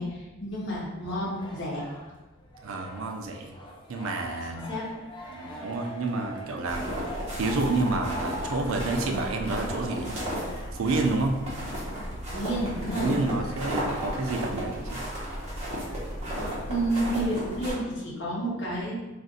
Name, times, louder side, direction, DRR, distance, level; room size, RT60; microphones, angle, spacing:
voice 1, 0.0-1.8 4.5-4.9 12.3-13.2 16.7-19.0, right 1 dB, 60° left, -6 dB, 1.1 m, -30 dB
sound 1, 1.0-17.5, left 1 dB, 20° left, 0.5 m, -43 dB
voice 2, 2.6-3.5 3.9-4.6 5.3-6.9 7.3-10.2 10.7-11.4 13.0-15.0, right 3 dB, 65° right, 4 dB, 0.4 m, -29 dB
sound 2, 6.7-17.7, equal, 30° right, 0.9 m, -34 dB
2.5 x 2.5 x 3.8 m, 1.1 s
head